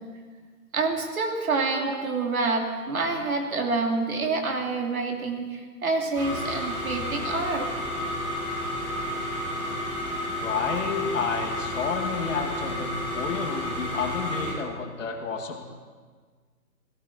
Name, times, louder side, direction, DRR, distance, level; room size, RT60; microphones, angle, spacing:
voice 1, 0.7-7.7, right 3 dB, 60° right, 2 dB, 2.9 m, -27 dB
sound 1, 6.1-14.5, left 1 dB, 10° right, 4.0 m, -31 dB
voice 2, 10.3-15.6, left 5 dB, 50° left, 4 dB, 2.2 m, -30 dB
17.5 x 17.0 x 4.3 m, 1.5 s
figure-of-eight pair, 150°, 48 cm